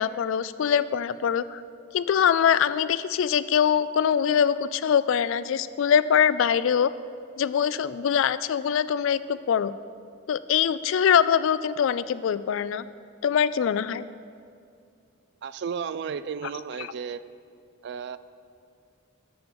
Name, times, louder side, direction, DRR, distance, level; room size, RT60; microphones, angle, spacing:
voice 1, 0.0-1.6 1.9-6.9 7.4-9.7 10.3-12.8 13.2-14.0, left 8 dB, 65° left, 15 dB, 0.3 m, -23 dB
voice 2, 15.4-17.2 17.8-18.2, right 6 dB, 55° right, 15 dB, 0.3 m, -33 dB
10.5 x 4.5 x 7.9 m, 2.4 s
head